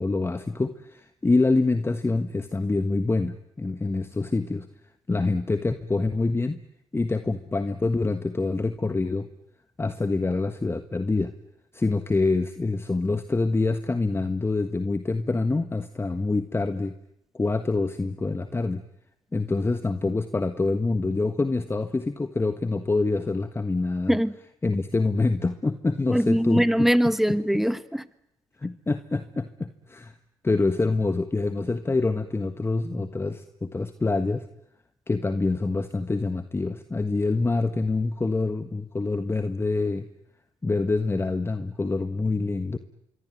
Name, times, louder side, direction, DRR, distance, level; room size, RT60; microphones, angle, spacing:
voice 1, 0.0-4.7 5.1-6.6 6.9-9.3 9.8-11.3 11.7-16.9 17.3-18.8 19.3-24.2 24.6-26.9 27.3-27.6 28.6-30.1 30.4-34.4 35.1-40.1 40.6-42.8, left 3 dB, 20° left, 1.5 m, -26 dB
voice 2, 26.1-28.0, equal, ahead, 1.5 m, -22 dB
26.0 x 23.0 x 9.3 m
supercardioid pair, 60°, 11 cm